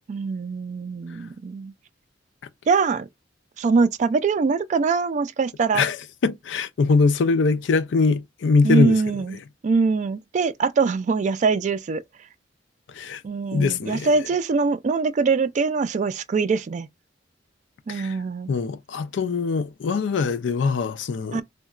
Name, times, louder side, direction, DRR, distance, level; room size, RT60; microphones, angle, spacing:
voice 1, 0.1-1.7 2.7-3.1 3.6-5.8 8.6-9.4 9.6-12.0 13.2-16.9 17.9-18.5 21.3-21.4, right 4 dB, 40° right, 0.3 m, -23 dB
voice 2, 5.7-9.4 12.9-13.2 13.5-14.1 17.9-18.2 18.5-21.4, left 4 dB, 85° left, 0.4 m, -22 dB
3.7 x 2.2 x 2.3 m
head